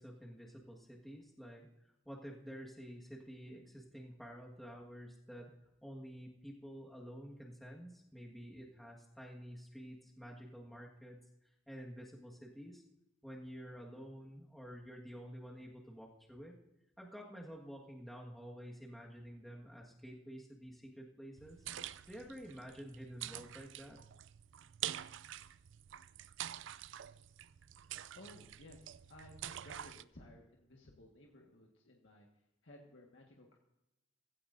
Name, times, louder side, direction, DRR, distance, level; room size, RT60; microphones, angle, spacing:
voice 1, 0.0-5.5 5.8-12.8 13.2-16.5 17.0-21.6 22.1-24.0, equal, ahead, -2 dB, 1.6 m, -50 dB
sound 1, 21.4-30.0, right 11 dB, 70° right, 0.4 m, -47 dB
voice 2, 28.1-32.3 32.6-33.6, left 1 dB, 70° left, 0 dB, 1.7 m, -57 dB
16.0 x 16.0 x 2.7 m, 0.91 s
head